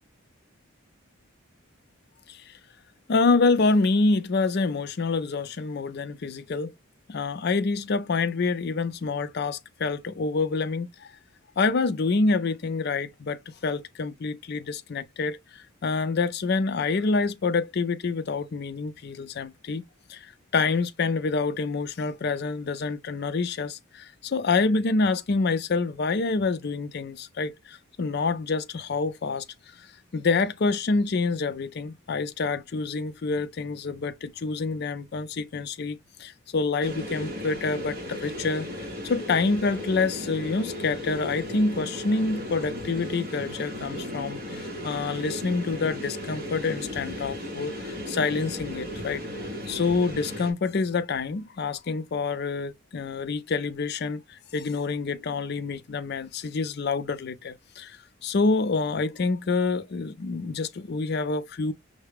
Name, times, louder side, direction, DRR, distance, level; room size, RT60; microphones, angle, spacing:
voice 1, 3.1-6.7 7.1-11.1 11.6-19.8 20.1-20.3 20.5-29.4 29.8-29.9 30.1-61.7, left 4 dB, 50° left, 0.4 m, -27 dB
sound 1, 36.8-50.5, left 1 dB, 45° right, 1.3 m, -35 dB
5.6 x 2.1 x 3.5 m
head